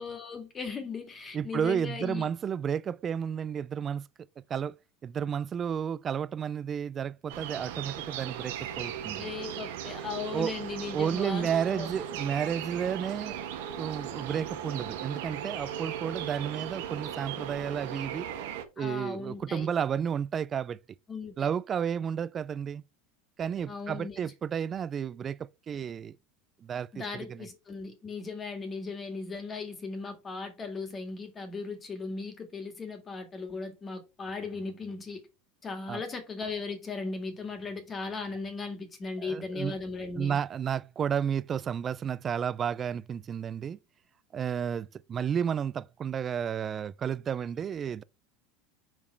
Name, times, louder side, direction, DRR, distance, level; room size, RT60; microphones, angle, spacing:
voice 1, 0.0-2.3 9.2-11.9 18.8-19.7 21.1-21.5 23.7-24.3 26.9-35.2 35.6-40.4, left 4 dB, 25° left, 1.8 m, -37 dB
voice 2, 1.3-4.1 4.4-4.8 5.0-9.3 10.3-10.5 10.9-13.4 13.7-18.3 18.8-20.8 21.4-22.8 23.4-26.2 26.6-27.5 35.9-36.0 39.2-39.8 40.2-43.8 44.3-48.0, right 8 dB, 30° right, 0.3 m, -32 dB
sound 1, 7.3-18.6, right 9 dB, 80° right, 1.3 m, -37 dB
5.3 x 5.0 x 4.5 m
supercardioid pair, 130°, 0 cm